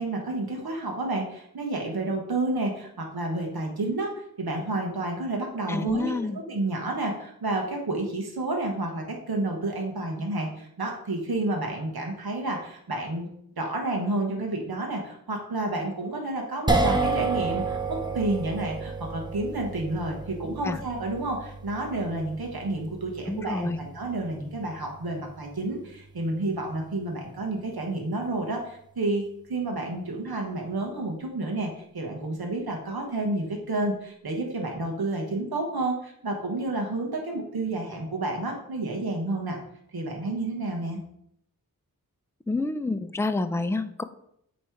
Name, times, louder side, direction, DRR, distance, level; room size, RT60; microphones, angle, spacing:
voice 1, 0.0-13.3 13.6-39.6 39.9-41.0, right 2 dB, 85° right, 1 dB, 1.2 m, -30 dB
voice 2, 5.7-6.4 20.6-20.8 23.3-23.8 42.5-44.0, left 3 dB, 10° left, 10 dB, 0.4 m, -28 dB
sound 1, 16.7-29.0, right 3 dB, 10° right, 0.8 m, -32 dB
8.2 x 3.1 x 4.5 m, 0.72 s
wide cardioid pair, 65°, 36 cm